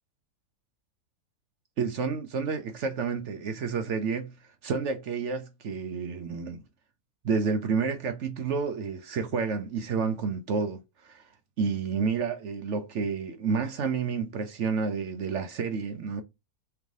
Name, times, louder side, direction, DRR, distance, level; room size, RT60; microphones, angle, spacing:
voice 1, 1.8-4.3 4.6-6.6 7.2-11.2 11.6-16.2, right 5 dB, 60° right, 0.8 m, -30 dB
3.5 x 3.3 x 3.5 m
omnidirectional pair, 1.7 m